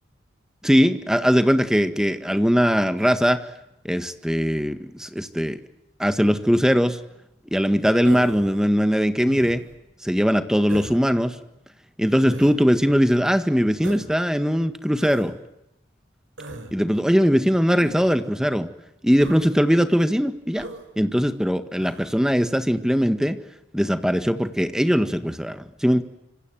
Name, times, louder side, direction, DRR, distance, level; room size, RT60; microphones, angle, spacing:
voice 1, 0.6-3.4 3.8-5.6 6.0-7.0 7.5-9.6 10.0-11.3 12.0-15.4 16.7-18.7 19.0-20.7 21.0-23.4 23.7-26.0, equal, 5° right, 9 dB, 1.7 m, -20 dB
Human voice, 8.0-8.5 9.3-9.8 10.7-11.0 12.2-12.6 13.8-14.2 15.0-15.3 16.4-16.7 17.8-18.2 19.2-19.4 20.5-20.8 21.8-22.1, right 1 dB, 85° right, 4.9 m, -38 dB
26.5 x 25.0 x 7.7 m, 0.86 s
head